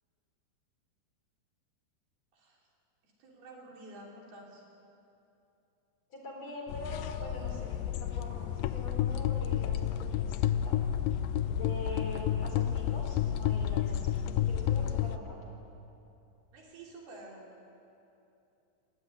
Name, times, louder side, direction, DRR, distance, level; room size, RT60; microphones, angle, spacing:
voice 1, 3.0-4.6 11.8-12.1 16.5-17.5, right 2 dB, 65° right, -2 dB, 5.4 m, -50 dB
voice 2, 6.1-10.8 11.5-15.4, left 1 dB, 40° left, -1 dB, 5.0 m, -44 dB
sound 1, 6.7-15.2, left 10 dB, 85° left, 2.0 m, -31 dB
27.5 x 16.0 x 10.0 m, 2.8 s
omnidirectional pair, 4.9 m